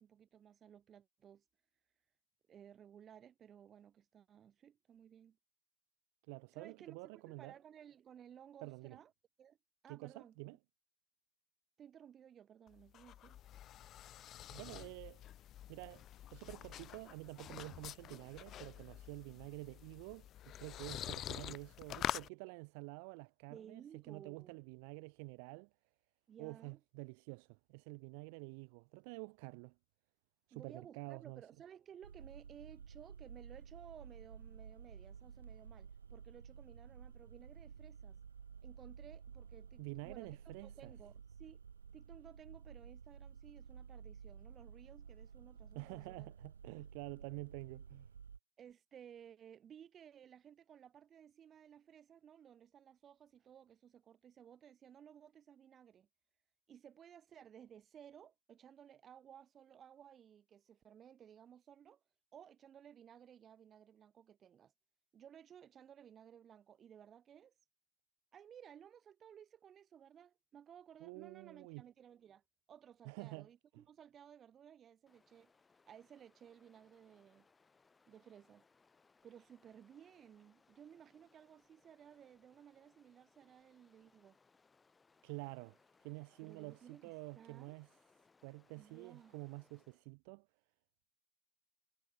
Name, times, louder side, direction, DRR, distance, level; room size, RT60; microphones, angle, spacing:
voice 1, 0.0-1.4 2.5-5.4 6.5-9.1 9.4-9.6 9.8-10.6 11.8-13.4 21.4-21.6 23.5-24.6 26.3-26.8 30.5-38.2 38.6-40.4 40.6-41.6 41.9-46.3 48.6-56.1 56.7-62.0 62.3-64.7 65.1-67.5 68.3-72.4 72.7-75.5 75.9-77.5 78.1-78.7 79.2-84.4 86.4-87.8 88.8-89.3, right 9 dB, 25° right, 2.5 m, -58 dB
voice 2, 6.3-7.6 8.6-9.0 9.9-10.6 14.5-15.2 15.7-25.7 26.4-29.7 30.5-31.4 39.8-40.9 45.7-48.1 71.0-71.8 73.0-73.5 85.2-85.8 86.0-87.9 88.4-90.5, right 35 dB, 45° right, 1.0 m, -49 dB
sound 1, 12.7-22.3, left 12 dB, 30° left, 0.6 m, -46 dB
sound 2, 32.0-48.4, right 6 dB, 70° right, 0.9 m, -53 dB
Stream, 75.1-90.1, left 4 dB, 15° left, 3.3 m, -72 dB
figure-of-eight pair, 90°, 0 cm